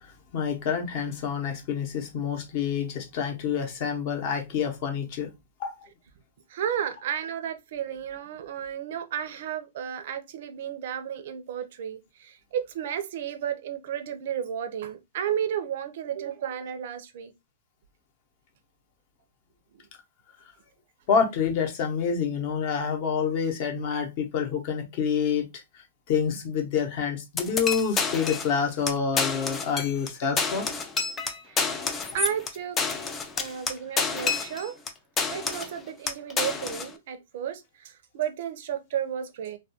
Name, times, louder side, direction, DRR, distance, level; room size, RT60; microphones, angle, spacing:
voice 1, 0.0-5.3 5.6-5.7 21.1-30.7, left 6 dB, 40° left, 0.7 m, -28 dB
voice 2, 6.5-17.3 31.5-31.6 32.1-32.8 33.4-34.7 35.3-39.6, right 9 dB, 55° right, 0.5 m, -33 dB
sound 1, 27.4-28.6 28.9-29.0 29.2-30.1 30.4-34.9 35.2-35.8 36.1-36.9, left 4 dB, 15° left, 0.3 m, -28 dB
2.3 x 2.2 x 2.8 m
hypercardioid pair, 155°, 0 cm